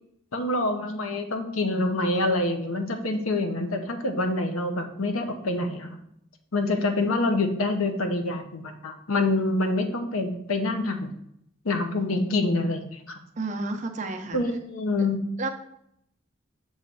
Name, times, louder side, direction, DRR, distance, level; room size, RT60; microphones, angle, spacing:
voice 1, 0.3-5.9 6.5-11.1 11.6-13.0 14.3-15.2, left 2 dB, 90° left, 6 dB, 0.8 m, -26 dB
voice 2, 13.4-14.4 15.4-15.5, right 3 dB, 35° right, 4 dB, 0.6 m, -31 dB
6.4 x 3.2 x 5.4 m, 0.76 s
head